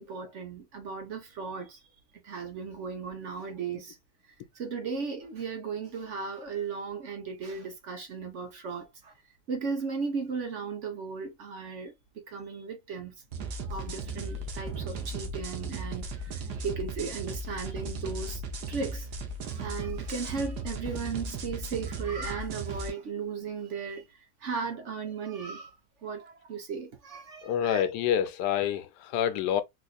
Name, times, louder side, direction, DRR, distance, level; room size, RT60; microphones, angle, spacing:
voice 1, 0.0-1.8 2.2-4.0 4.5-9.1 9.5-11.9 12.3-13.1 13.6-18.4 18.7-19.1 19.4-24.1 24.4-25.7 26.0-27.8, right 5 dB, 55° right, 1.0 m, -36 dB
sound 1, 13.3-22.9, right 2 dB, 80° right, 1.4 m, -36 dB
voice 2, 27.4-29.6, left 9 dB, 90° left, 1.2 m, -28 dB
4.2 x 2.6 x 2.3 m
omnidirectional pair, 1.7 m